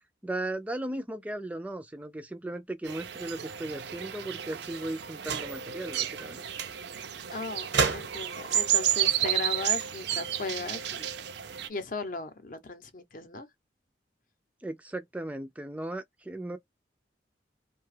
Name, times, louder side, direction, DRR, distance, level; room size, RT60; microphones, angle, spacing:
voice 1, 0.2-6.4 14.6-16.6, right 1 dB, 10° right, 0.3 m, -36 dB
sound 1, 2.9-11.7, right 11 dB, 70° right, 0.5 m, -32 dB
sound 2, 5.2-5.7 6.2-6.3 6.6-6.8 7.7-8.4 9.6-10.7, right 5 dB, 90° right, 0.9 m, -32 dB
voice 2, 7.3-7.7 7.9-11.1 11.7-13.5, left 3 dB, 50° left, 0.7 m, -36 dB
2.8 x 2.2 x 3.2 m
head